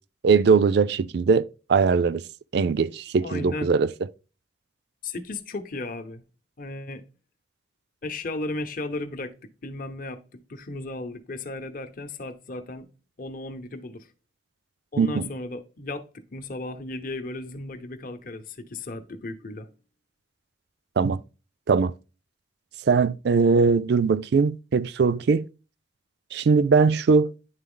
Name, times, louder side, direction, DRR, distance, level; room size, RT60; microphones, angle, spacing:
voice 1, 0.2-2.2 2.5-3.9 15.0-15.2 21.0-21.2 21.7-21.9 22.9-25.5 26.3-27.3, right 5 dB, 60° right, 0.4 m, -20 dB
voice 2, 3.2-3.7 5.0-6.2 6.6-7.0 8.0-12.9 13.2-14.1 14.9-19.7, left 2 dB, 50° left, 0.8 m, -35 dB
9.7 x 3.8 x 3.8 m
head